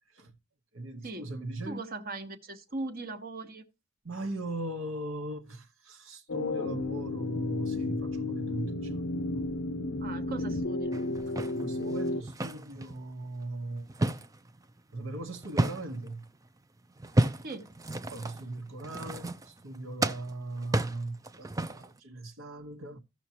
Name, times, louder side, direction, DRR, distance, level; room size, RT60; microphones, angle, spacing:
voice 1, 0.7-1.8 4.0-9.1 11.4-13.9 14.9-16.2 18.1-23.0, right 2 dB, 65° right, 1.1 m, -39 dB
voice 2, 1.7-3.6 10.0-10.9 17.4-17.7, right 2 dB, 40° right, 1.1 m, -39 dB
sound 1, 6.3-12.2, left 2 dB, 55° left, 0.6 m, -33 dB
sound 2, 10.9-13.0 13.4-16.1 17.0-19.8 20.0-22.0, right 2 dB, 15° right, 0.4 m, -32 dB
15.5 x 5.9 x 2.9 m
head